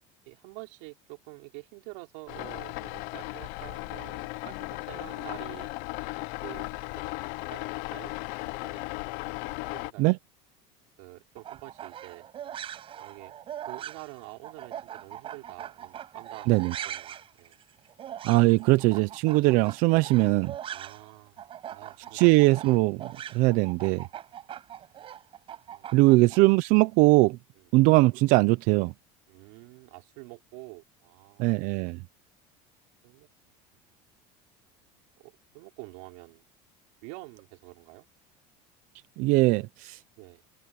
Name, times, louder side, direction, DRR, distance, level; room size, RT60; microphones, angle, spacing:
voice 1, 0.3-5.7 6.4-6.7 7.0-7.1 7.5-8.1 8.6-8.9 9.7-10.1 11.0-12.3 13.0-13.3 13.7-17.6 20.7-22.3 25.7-26.2 27.6-27.7 29.3-31.8 33.0-33.3 34.6-34.7 35.2-36.4 37.0-38.1 40.2-40.4, right 28 dB, 80° right, 5.4 m, -47 dB
sound 1, 2.3-9.9, left 22 dB, 70° left, 0.7 m, -36 dB
sound 2, 11.4-21.1 21.4-26.4, right 10 dB, 35° right, 6.5 m, -41 dB
voice 2, 18.2-20.5 22.1-24.1 25.9-27.4 27.7-28.9 31.4-32.0 39.2-40.0, right 22 dB, 65° right, 0.6 m, -21 dB
cardioid pair, 150°, 15 cm